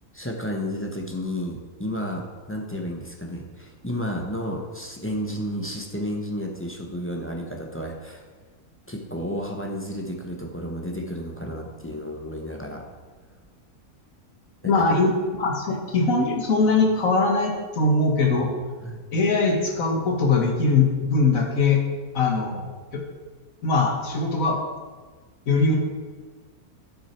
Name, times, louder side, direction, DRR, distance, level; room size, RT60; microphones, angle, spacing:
voice 1, 0.1-8.2 8.9-12.9 14.6-14.8 18.8-19.0, equal, 10° left, 1 dB, 0.8 m, -32 dB
voice 2, 14.6-18.5 19.1-21.8 22.1-22.7 22.9-23.0 23.6-24.6 25.5-25.8, left 3 dB, 65° left, 2 dB, 1.8 m, -21 dB
12.0 x 6.4 x 4.4 m, 1.4 s
omnidirectional pair, 1.5 m